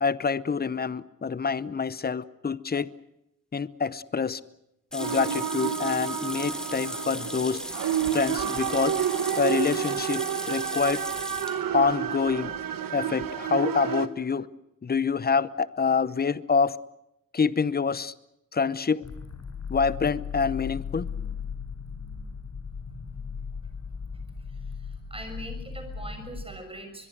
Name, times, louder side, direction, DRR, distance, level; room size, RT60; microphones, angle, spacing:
voice 1, 0.0-2.9 3.5-4.4 4.9-7.6 8.1-8.9 9.4-11.0 11.7-12.5 12.9-14.5 14.8-16.8 17.3-18.1 18.5-19.0 19.7-21.1, left 5 dB, 30° left, 17 dB, 0.8 m, -26 dB
sound 1, 4.9-11.6, equal, ahead, 3.5 m, -37 dB
sound 2, 5.0-14.1, right 9 dB, 75° right, 1.5 m, -30 dB
sound 3, 19.0-26.5, left 6 dB, 55° left, 6.8 m, -37 dB
voice 2, 24.4-27.1, right 1 dB, 15° right, 6 dB, 6.5 m, -42 dB
23.0 x 22.5 x 8.0 m, 0.85 s
wide cardioid pair, 120°, 34 cm